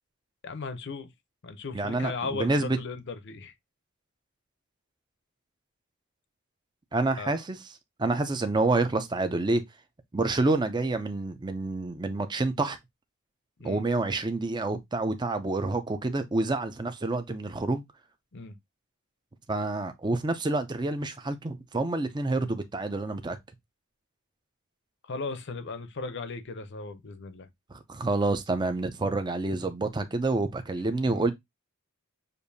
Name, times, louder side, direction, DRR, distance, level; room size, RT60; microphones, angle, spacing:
voice 1, 0.4-1.1 1.4-3.5 7.2-7.4 13.6-13.8 18.3-18.6 25.0-27.5 31.0-31.3, left 3 dB, 55° left, 0.6 m, -37 dB
voice 2, 1.7-2.8 6.9-7.6 8.0-9.6 10.1-12.8 13.6-17.8 19.5-23.4 27.7-31.3, right 2 dB, 20° right, 0.5 m, -28 dB
6.7 x 2.6 x 2.7 m
head